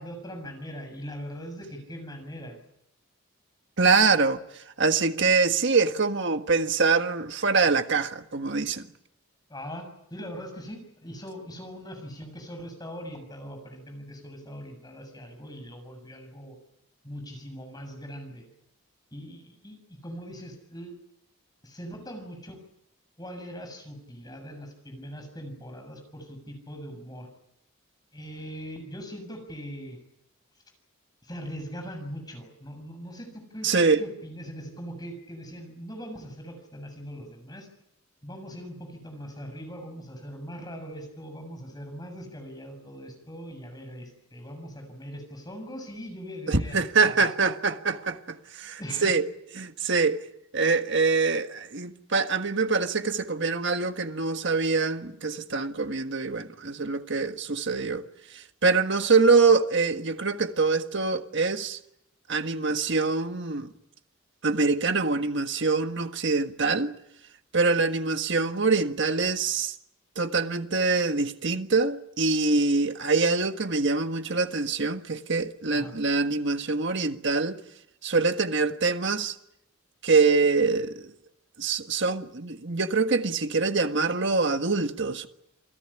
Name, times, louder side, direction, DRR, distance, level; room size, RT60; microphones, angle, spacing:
voice 1, 0.0-2.6 9.5-16.6 17.0-18.5 19.1-20.9 21.6-22.6 23.2-27.3 28.1-30.0 31.2-37.7 38.2-46.8 47.1-47.3 48.8-49.2 75.7-75.9, equal, 20° left, 7.1 m, -41 dB
voice 2, 3.8-4.4 4.8-8.8 33.6-34.0 46.5-49.3 49.6-50.2 50.5-58.0 58.6-61.8 62.3-63.7 64.4-66.9 67.5-69.7 70.2-77.6 78.0-79.3 80.0-81.0 81.6-85.3, right 4 dB, 55° right, 1.5 m, -24 dB
28.5 x 17.0 x 10.0 m
head